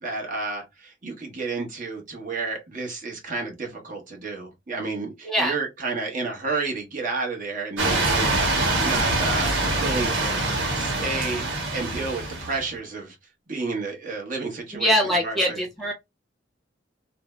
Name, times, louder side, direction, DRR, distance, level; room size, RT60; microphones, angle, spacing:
voice 1, 0.0-8.4 8.8-9.5 9.8-10.4 10.7-11.5 11.7-13.2 13.5-15.6, right 3 dB, 45° right, 0.9 m, -31 dB
voice 2, 5.2-5.6 14.7-15.9, equal, ahead, 0.8 m, -23 dB
sound 1, 7.8-12.7, right 2 dB, 85° right, 1.1 m, -24 dB
2.6 x 2.0 x 3.1 m
head